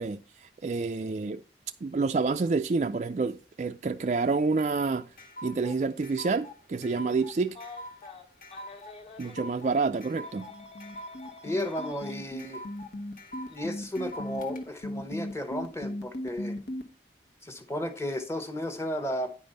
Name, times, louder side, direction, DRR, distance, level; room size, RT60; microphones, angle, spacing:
voice 1, 0.0-1.4 1.8-5.1 5.4-7.6 9.2-10.5, right 4 dB, 40° right, 0.3 m, -28 dB
sound 1, 4.6-14.6, equal, 50° left, 1.6 m, -45 dB
Telephone, 7.5-9.4 10.2-12.1 13.5-13.6 15.1-15.3, left 3 dB, 35° left, 1.4 m, -48 dB
sound 2, 10.5-16.8, left 1 dB, 70° left, 1.3 m, -36 dB
voice 2, 11.4-12.6 13.5-16.6 17.4-19.3, left 1 dB, 15° left, 1.0 m, -34 dB
9.7 x 5.2 x 5.4 m
head